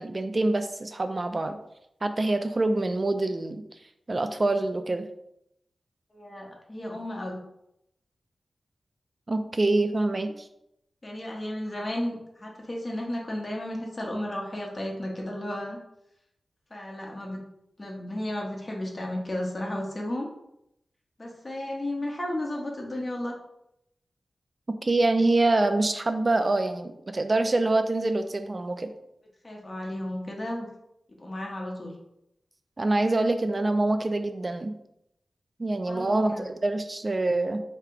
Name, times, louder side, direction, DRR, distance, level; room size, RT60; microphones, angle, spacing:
voice 1, 0.0-1.6 2.0-3.6 4.1-5.1 9.3-10.3 24.8-28.9 32.8-34.7 35.6-37.6, right 2 dB, 45° right, 8 dB, 0.3 m, -25 dB
voice 2, 6.1-7.4 11.0-15.8 16.7-17.4 17.8-20.3 21.2-23.3 29.4-30.7 31.2-31.9 35.8-36.5, left 1 dB, 35° left, -1 dB, 1.2 m, -33 dB
3.2 x 2.9 x 4.6 m, 0.81 s
cardioid pair, 50°, 0 cm